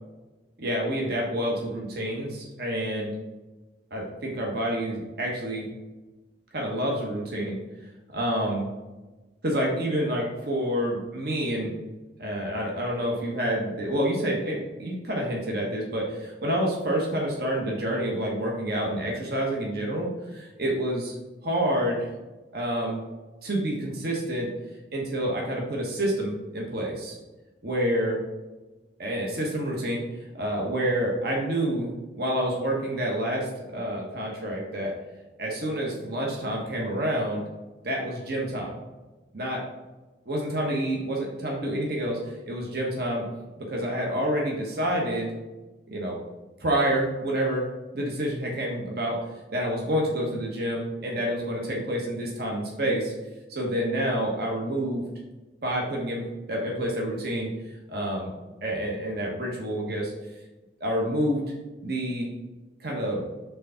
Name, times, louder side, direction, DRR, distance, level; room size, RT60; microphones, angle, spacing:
voice 1, 0.6-3.1 3.9-5.7 6.5-7.6 8.1-8.7 9.4-11.7 12.2-21.1 21.4-22.1 22.5-23.0 23.4-24.5 24.9-27.2 27.6-28.2 29.0-30.0 30.3-34.9 35.4-37.4 37.8-38.8 39.3-39.6 40.3-43.2 43.6-45.3 45.9-46.2 46.6-47.7 47.9-49.2 49.5-53.1 53.5-55.0 55.6-57.5 57.9-58.3 58.6-60.1 60.8-61.5 61.8-62.3 62.8-63.2, right 1 dB, 60° right, -1 dB, 1.2 m, -28 dB
4.8 x 3.8 x 5.7 m, 1.1 s
head